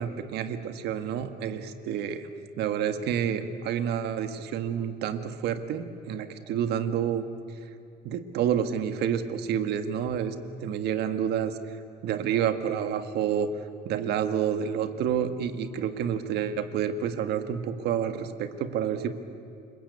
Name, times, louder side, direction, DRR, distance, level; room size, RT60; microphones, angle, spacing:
voice 1, 0.0-2.3 2.6-7.2 8.0-10.3 10.6-11.5 12.0-13.5 13.8-19.1, right 8 dB, 80° right, 8 dB, 1.7 m, -29 dB
29.0 x 20.5 x 8.4 m, 2.6 s
cardioid pair, 110°, 17 cm